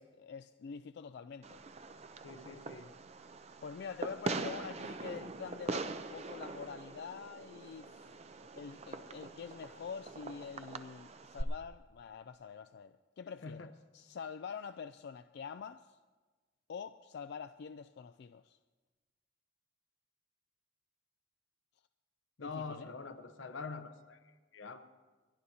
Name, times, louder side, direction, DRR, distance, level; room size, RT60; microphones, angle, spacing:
voice 1, 0.0-1.6 3.6-8.2 8.6-16.0 16.7-18.6 22.4-22.9, left 6 dB, 60° left, 9 dB, 0.3 m, -46 dB
Fireworks, 1.4-11.4, right 3 dB, 35° right, 0.5 m, -43 dB
voice 2, 2.2-2.9 13.4-13.7 22.4-24.2 24.5-24.9, left 4 dB, 85° left, 9 dB, 0.9 m, -44 dB
28.5 x 11.5 x 2.8 m, 1.3 s
head